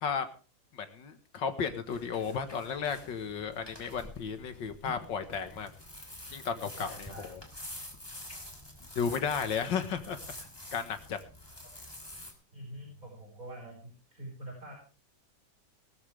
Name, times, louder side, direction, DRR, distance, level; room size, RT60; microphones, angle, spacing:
voice 1, 0.7-5.7 6.3-7.4 9.0-10.2 10.7-11.2, left 6 dB, 75° left, 9 dB, 2.1 m, -34 dB
sound 1, 1.9-12.3, left 1 dB, 10° left, 3.1 m, -47 dB
voice 2, 6.7-7.3 12.5-14.7, right 1 dB, 45° right, -2 dB, 5.9 m, -45 dB
19.0 x 13.0 x 3.4 m, 0.35 s
omnidirectional pair, 2.0 m